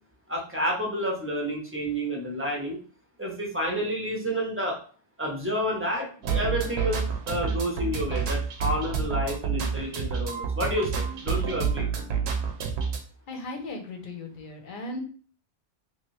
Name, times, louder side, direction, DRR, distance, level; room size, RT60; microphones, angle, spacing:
voice 1, 0.3-2.8 3.2-4.8 5.2-11.9, equal, 15° right, -2 dB, 0.6 m, -30 dB
sound 1, 6.2-13.0, right 6 dB, 75° right, 0.8 m, -28 dB
voice 2, 13.3-15.0, left 2 dB, 55° left, 4 dB, 0.8 m, -37 dB
3.0 x 2.5 x 3.0 m, 0.42 s
omnidirectional pair, 1.1 m